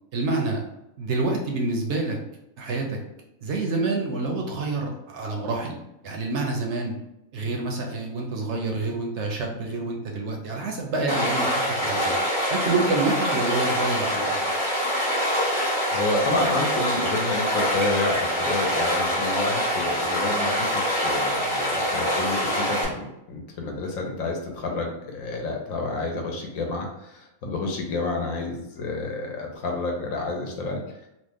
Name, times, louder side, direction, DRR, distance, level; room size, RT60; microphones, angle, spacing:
voice 1, 0.1-0.6 1.0-2.2 2.6-3.0 3.4-5.8 6.0-7.0 7.3-11.5 11.8-12.2 12.5-14.6, right 3 dB, 65° right, 1 dB, 0.8 m, -27 dB
Stream, 11.1-22.8, equal, 25° left, 0.9 m, -25 dB
voice 2, 15.9-30.8, left 2 dB, 80° left, 1 dB, 1.1 m, -29 dB
3.0 x 2.1 x 3.4 m, 0.87 s
omnidirectional pair, 1.4 m